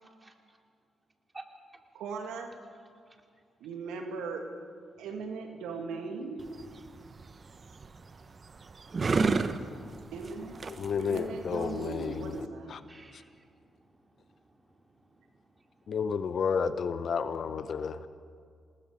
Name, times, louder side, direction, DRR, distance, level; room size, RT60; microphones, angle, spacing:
voice 1, 0.0-0.6 1.3-1.4 1.7-1.8 6.8-7.2 12.9-15.2 15.5-15.6, right 2 dB, 25° right, 3 dB, 3.1 m, -56 dB
voice 2, 1.9-2.5 3.6-4.5 5.0-6.5 10.1-10.6 11.0-12.8, right 4 dB, 75° right, 4 dB, 2.2 m, -38 dB
sound 1, 6.4-12.5, right 4 dB, 45° right, 1.1 m, -33 dB
voice 3, 10.7-12.8 13.1-13.2 15.9-18.1, left 6 dB, 60° left, 14 dB, 0.9 m, -32 dB
27.5 x 19.5 x 5.1 m, 2.2 s
hypercardioid pair, 40°, 0 cm